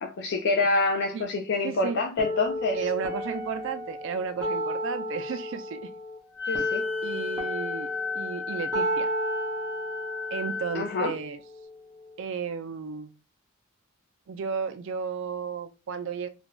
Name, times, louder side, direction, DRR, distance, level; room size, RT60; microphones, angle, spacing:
voice 1, 0.0-2.8 6.5-6.8 10.7-11.1, left 3 dB, 55° left, 0.4 m, -26 dB
voice 2, 1.6-2.0 2.7-5.9 6.5-6.6 7.0-7.9 8.1-9.1 10.3-11.4 12.2-13.1 14.3-16.3, right 6 dB, 60° right, 0.4 m, -33 dB
sound 1, 2.2-12.2, equal, 15° right, 0.7 m, -33 dB
Wind instrument woodwind instrument, 6.3-11.0, left 5 dB, 20° left, 0.9 m, -34 dB
2.4 x 2.2 x 3.0 m
head